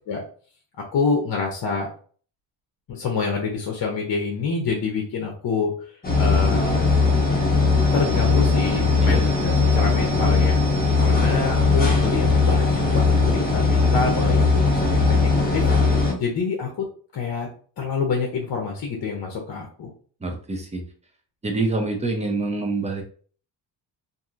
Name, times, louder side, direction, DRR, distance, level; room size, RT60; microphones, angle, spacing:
voice 1, 0.9-1.9 2.9-5.7 6.2-6.9 7.9-10.6 11.0-14.4 14.6-16.9 17.1-17.5 17.8-19.9, left 4 dB, 55° left, 1 dB, 0.8 m, -27 dB
sound 1, 6.0-16.1, left 3 dB, 20° left, 1.1 m, -19 dB
voice 2, 20.2-20.8 21.4-23.0, right 3 dB, 15° right, 3 dB, 0.6 m, -26 dB
2.8 x 2.6 x 2.4 m, 0.44 s
cardioid pair, 115°, 43 cm